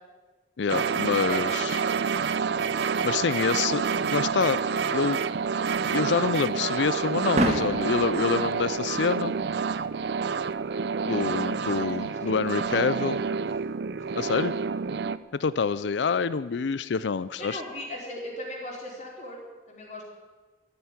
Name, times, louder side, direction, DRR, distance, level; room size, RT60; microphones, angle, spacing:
voice 1, 0.6-1.8 3.0-3.8 4.1-4.6 4.9-5.2 5.9-9.3 11.0-13.2 14.1-14.5 15.3-17.6, left 5 dB, 85° left, 16 dB, 0.5 m, -26 dB
sound 1, 0.7-15.2, right 5 dB, 70° right, 0.5 m, -28 dB
sound 2, 3.6-14.8, right 1 dB, 35° right, 1.6 m, -37 dB
voice 2, 11.6-13.5 14.1-14.3 15.2-15.3 17.4-20.0, left 1 dB, 40° left, -2 dB, 4.2 m, -40 dB
14.0 x 9.2 x 9.6 m, 1.3 s
head